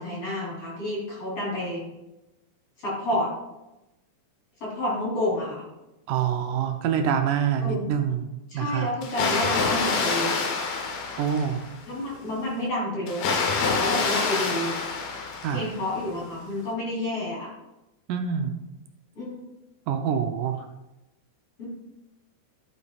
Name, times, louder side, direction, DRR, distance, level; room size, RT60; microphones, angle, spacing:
voice 1, 0.0-1.9 2.8-3.3 4.6-5.6 7.6-7.8 8.5-10.4 11.9-14.7 15.5-17.5 19.2-19.4 21.6-21.7, left 1 dB, 40° left, -6 dB, 4.2 m, -29 dB
voice 2, 6.1-8.9 11.2-11.7 15.4-15.7 18.1-18.5 19.9-20.7, right 8 dB, 75° right, 5 dB, 2.0 m, -26 dB
Water, 9.0-11.8 13.1-15.9, left 4 dB, 80° left, 3.1 m, -27 dB
12.0 x 8.3 x 2.5 m, 0.94 s
omnidirectional pair, 4.1 m